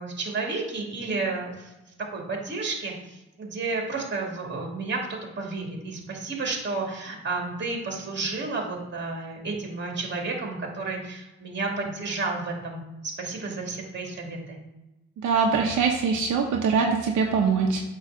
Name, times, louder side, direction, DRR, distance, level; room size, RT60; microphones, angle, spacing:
voice 1, 0.0-1.7 2.1-14.6, right 3 dB, 35° right, 0 dB, 2.4 m, -31 dB
voice 2, 15.2-17.8, right 5 dB, 75° right, 1 dB, 1.0 m, -23 dB
8.2 x 3.2 x 6.3 m, 1.0 s
cardioid pair, 90°, 30 cm